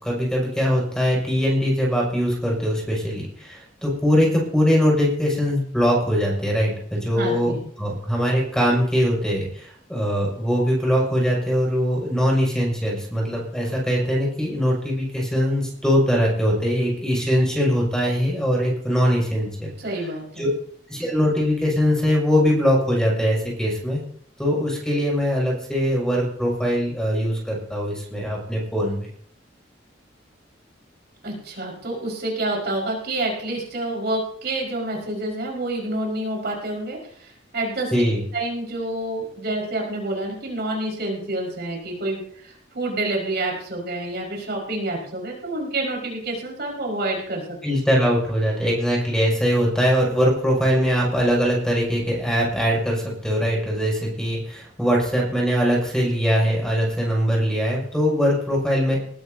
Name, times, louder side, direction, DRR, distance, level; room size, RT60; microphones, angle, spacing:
voice 1, 0.0-19.7 20.4-20.5 20.9-24.0 24.4-29.1 37.9-38.2 47.6-59.0, equal, 5° left, -2 dB, 6.1 m, -22 dB
voice 2, 7.1-7.6 19.8-20.5 31.2-37.9 38.3-47.6, right 2 dB, 60° right, -2 dB, 5.2 m, -28 dB
20.5 x 14.0 x 2.8 m, 0.63 s
head